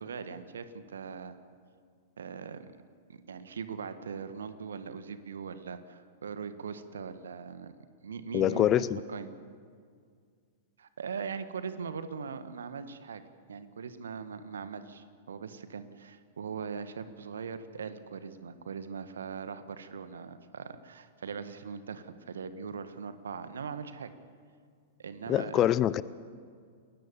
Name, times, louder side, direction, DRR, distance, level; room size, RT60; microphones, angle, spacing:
voice 1, 0.0-1.3 2.2-2.7 3.1-7.7 8.0-8.7 9.1-9.3 10.8-13.2 13.5-24.1 25.0-25.7, right 6 dB, 65° right, 11 dB, 1.7 m, -40 dB
voice 2, 8.3-9.0 25.3-26.0, left 12 dB, 30° left, 19 dB, 0.7 m, -25 dB
29.0 x 21.0 x 7.2 m, 2.1 s
figure-of-eight pair, 100°, 0 cm